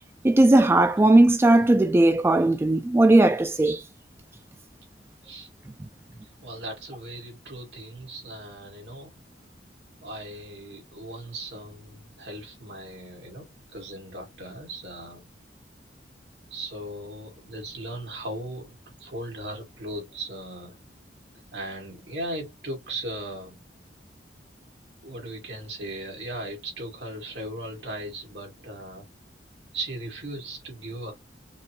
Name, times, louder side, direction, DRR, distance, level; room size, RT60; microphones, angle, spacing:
voice 1, 0.2-3.8, right 2 dB, 15° right, 0.3 m, -18 dB
voice 2, 6.4-9.1 10.0-15.3 16.5-18.7 19.0-20.9 21.5-23.6 25.0-29.1 29.7-31.1, right 1 dB, 70° right, 2.1 m, -37 dB
5.2 x 2.3 x 2.9 m
head